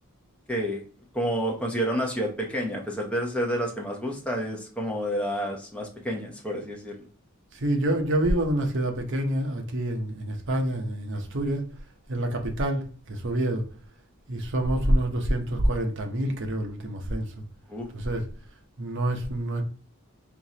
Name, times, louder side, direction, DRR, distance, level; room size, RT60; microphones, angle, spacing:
voice 1, 0.5-0.8 1.1-6.9 17.7-17.9, equal, 5° left, 0.8 m, -29 dB
voice 2, 7.5-11.7 12.1-13.6 14.3-17.4 17.9-18.3 18.8-19.6, right 1 dB, 55° right, 0.8 m, -27 dB
4.5 x 3.0 x 2.8 m
head